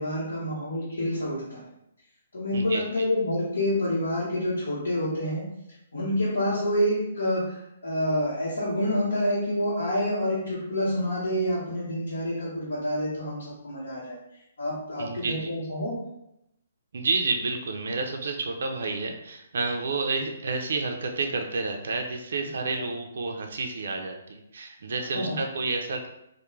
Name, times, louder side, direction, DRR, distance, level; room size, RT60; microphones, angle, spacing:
voice 1, 0.0-1.7 2.3-5.5 5.9-16.0 22.8-22.9 25.1-25.4, left 1 dB, 80° left, -8 dB, 0.9 m, -28 dB
voice 2, 15.0-15.5 16.9-26.1, right 3 dB, 70° right, 3 dB, 0.3 m, -30 dB
2.3 x 2.0 x 3.0 m, 0.82 s
hypercardioid pair, 150°, 0 cm